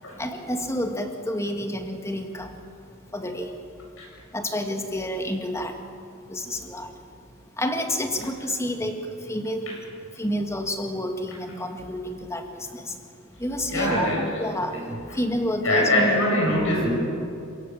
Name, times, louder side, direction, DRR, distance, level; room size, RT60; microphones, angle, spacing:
voice 1, 0.2-2.6 3.1-3.5 4.3-5.8 6.3-6.9 7.6-9.0 9.3-9.8 10.2-12.9 13.4-14.8 15.1-16.1, equal, 15° left, 4 dB, 1.9 m, -29 dB
voice 2, 13.6-15.0 15.6-16.9, left 1 dB, 80° left, -1 dB, 7.7 m, -24 dB
27.5 x 16.5 x 7.5 m, 2.6 s
head